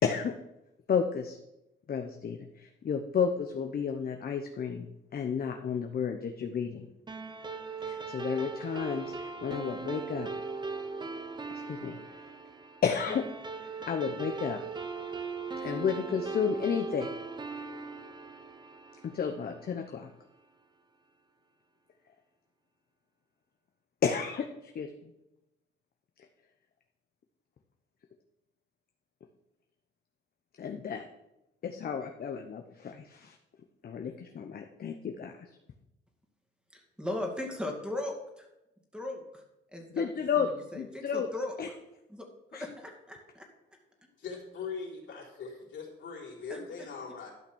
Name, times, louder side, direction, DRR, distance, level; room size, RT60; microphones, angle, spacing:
voice 1, 0.0-0.3 0.9-1.4 1.9-4.9 5.1-6.9 7.8-10.3 11.6-12.2 12.8-13.2 13.6-14.6 15.6-17.1 19.0-20.1 24.0-24.9 30.6-31.1 31.6-33.4 33.8-35.5 39.9-41.3 41.6-41.7 42.5-42.6, left 6 dB, 50° left, 5 dB, 0.9 m, -32 dB
sound 1, 7.1-19.8, right 4 dB, 20° right, 0.9 m, -39 dB
voice 2, 36.7-38.5 38.9-39.4 39.7-40.1 40.4-41.6 42.1-42.2 42.5-43.4 46.5-46.6, left 1 dB, 5° right, 2 dB, 2.2 m, -38 dB
voice 3, 44.2-47.3, left 5 dB, 70° left, -3 dB, 3.5 m, -41 dB
12.0 x 5.8 x 6.2 m, 0.91 s
cardioid pair, 90°, 20 cm